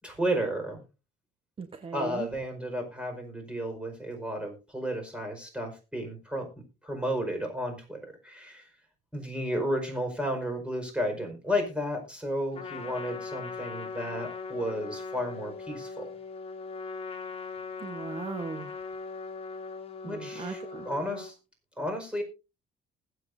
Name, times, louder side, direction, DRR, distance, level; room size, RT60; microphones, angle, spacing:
voice 1, 0.0-0.8 1.9-6.5 6.8-8.7 9.1-16.0 20.0-21.3 21.8-22.2, equal, 5° right, 4 dB, 4.8 m, -33 dB
voice 2, 1.6-2.3 17.8-18.7 20.0-20.9, right 4 dB, 30° right, 7 dB, 1.2 m, -38 dB
Trumpet, 12.5-21.3, left 4 dB, 35° left, 2.7 m, -39 dB
20.5 x 8.1 x 2.7 m, 0.29 s
cardioid pair, 110°, 17 cm